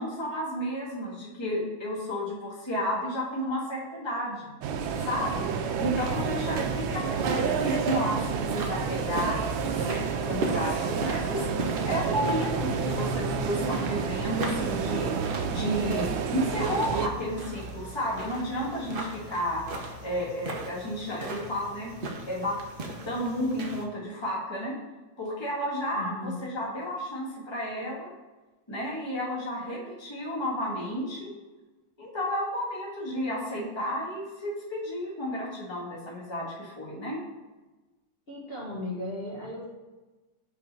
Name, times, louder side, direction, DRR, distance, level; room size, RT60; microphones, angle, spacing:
voice 1, 0.0-4.5 5.0-5.4 5.8-22.0 22.3-22.6 23.0-24.7 25.2-28.1 28.7-31.3 32.0-37.2, equal, 15° left, -4 dB, 1.4 m, -32 dB
sound 1, 4.6-17.1, right 6 dB, 85° right, 1.4 m, -29 dB
sound 2, 5.9-23.8, right 2 dB, 65° right, 0.5 m, -38 dB
voice 2, 25.9-26.4 38.3-39.7, left 1 dB, 35° left, -7 dB, 1.4 m, -36 dB
5.1 x 4.7 x 5.3 m, 1.2 s
omnidirectional pair, 2.1 m